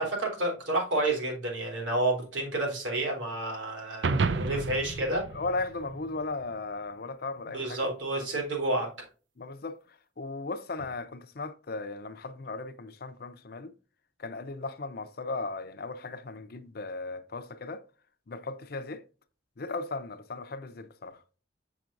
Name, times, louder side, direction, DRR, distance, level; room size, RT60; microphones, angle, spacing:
voice 1, 0.0-5.3 7.5-8.9, right 2 dB, 90° right, 3.6 m, -30 dB
sound 1, 4.0-6.5, right 4 dB, 70° right, 0.5 m, -31 dB
voice 2, 5.3-7.8 9.4-13.7 14.2-17.8 18.3-19.0 19.6-21.2, left 3 dB, 55° left, 0.6 m, -37 dB
7.6 x 5.9 x 2.5 m
head